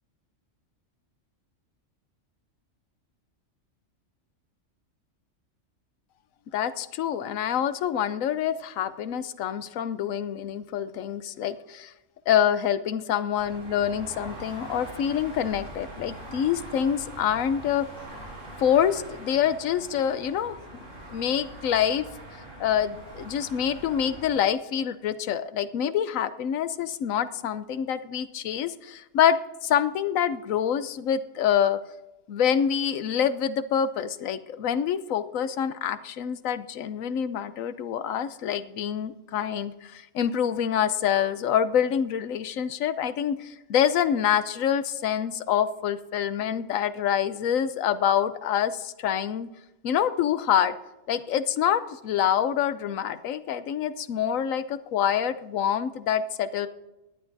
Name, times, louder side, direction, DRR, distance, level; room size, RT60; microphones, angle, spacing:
voice 1, 6.5-11.9 12.3-17.9 18.6-20.6 21.1-22.1 22.6-31.8 32.3-49.5 49.8-50.7 51.1-56.7, left 9 dB, 85° left, 13 dB, 1.1 m, -26 dB
sound 1, 13.4-24.3, right 1 dB, 40° right, 5.0 m, -43 dB
18.5 x 11.0 x 2.7 m, 0.98 s
omnidirectional pair, 1.3 m